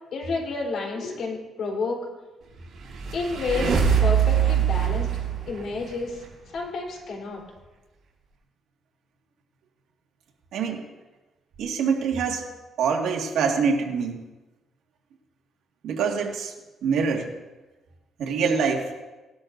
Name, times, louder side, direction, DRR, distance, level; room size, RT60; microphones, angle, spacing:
voice 1, 0.1-2.0 3.1-5.1 5.5-6.2 6.5-7.4, left 3 dB, 65° left, -1 dB, 3.7 m, -30 dB
sound 1, 2.7-6.2, right 8 dB, 60° right, 4.0 m, -23 dB
voice 2, 10.5-10.8 11.6-12.5 12.8-14.2 15.8-16.5 16.8-17.3 18.2-18.9, right 5 dB, 80° right, 1 dB, 1.9 m, -25 dB
18.5 x 12.0 x 2.6 m, 1.1 s
cardioid pair, 115°, 0 cm